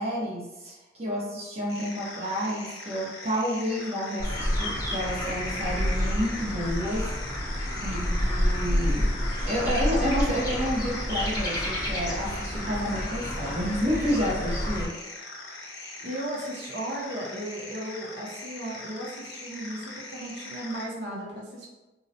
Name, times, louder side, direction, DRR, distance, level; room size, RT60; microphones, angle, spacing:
voice 1, 0.0-7.1 7.9-8.0 8.3-15.0, equal, 35° right, -5 dB, 0.7 m, -30 dB
sound 1, 1.7-20.8, left 2 dB, 85° left, 0.9 m, -42 dB
sound 2, 4.2-14.9, equal, 20° left, 0.6 m, -29 dB
voice 2, 7.8-8.3 16.0-21.7, right 1 dB, 75° right, -3 dB, 0.7 m, -36 dB
3.8 x 2.0 x 2.7 m, 1.1 s
head